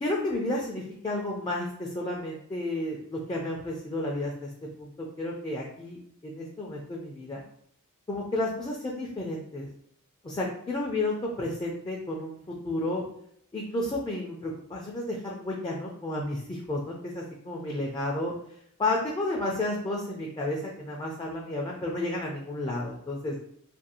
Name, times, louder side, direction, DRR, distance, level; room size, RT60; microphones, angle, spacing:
voice 1, 0.0-4.5 4.8-7.4 8.1-9.7 10.2-13.0 13.5-18.3 18.8-23.5, left 2 dB, 20° left, -2 dB, 0.3 m, -32 dB
2.6 x 2.3 x 2.7 m, 0.68 s
head